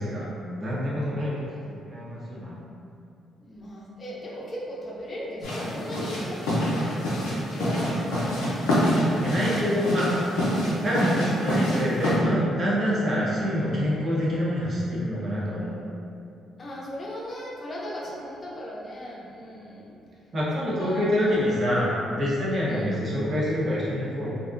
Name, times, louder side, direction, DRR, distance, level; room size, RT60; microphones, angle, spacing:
voice 1, 0.0-1.6 3.4-6.6 7.0-8.3 13.1-13.4 14.1-14.4 16.6-19.9 20.7-21.4 22.7-22.9, equal, 40° left, -5 dB, 0.6 m, -38 dB
voice 2, 0.6-1.4 1.7-2.6 9.2-10.3 10.8-15.8 20.3-24.4, equal, 50° right, -7 dB, 0.8 m, -26 dB
sound 1, 5.4-12.2, equal, 85° left, 0.5 m, -26 dB
2.5 x 2.0 x 2.5 m, 2.6 s
hypercardioid pair, 50°, 0 cm